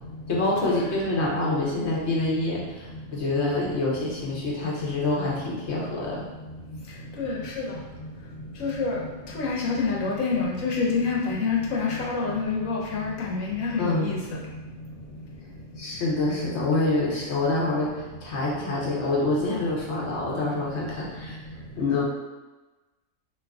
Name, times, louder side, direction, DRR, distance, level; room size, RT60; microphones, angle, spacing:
voice 1, 0.3-6.2 13.8-14.1 15.8-21.4 21.8-22.0, left 2 dB, 60° left, -4 dB, 0.9 m, -26 dB
voice 2, 7.2-7.6 8.6-9.0 9.3-14.2 21.8-22.0, left 4 dB, 80° left, -3 dB, 1.1 m, -27 dB
2.8 x 2.4 x 3.4 m, 1.2 s
omnidirectional pair, 1.4 m